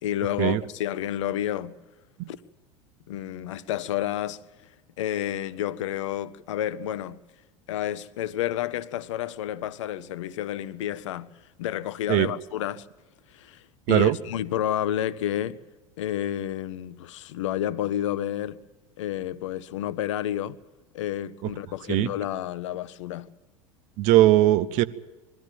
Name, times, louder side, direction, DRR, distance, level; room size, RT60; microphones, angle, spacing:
voice 1, 0.0-1.8 2.3-2.4 3.1-4.4 5.0-7.2 7.7-11.3 11.6-12.9 13.3-13.6 13.9-15.6 16.0-18.6 19.0-20.6 20.9-23.3, left 11 dB, 65° left, 0.8 m, -30 dB
voice 2, 24.0-24.8, right 15 dB, 50° right, 0.9 m, -19 dB
21.5 x 14.0 x 9.2 m
figure-of-eight pair, 80°, 17 cm